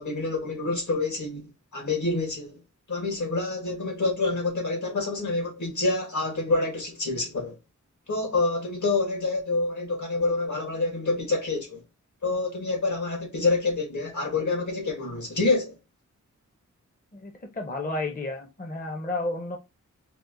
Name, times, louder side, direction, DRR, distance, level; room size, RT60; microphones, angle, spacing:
voice 1, 0.0-2.6 2.9-7.6 8.1-11.8 12.2-15.8, left 3 dB, 65° left, 1.2 m, -27 dB
voice 2, 17.1-19.6, left 2 dB, 30° left, 0.6 m, -32 dB
4.2 x 2.1 x 2.5 m
wide cardioid pair, 80°, 31 cm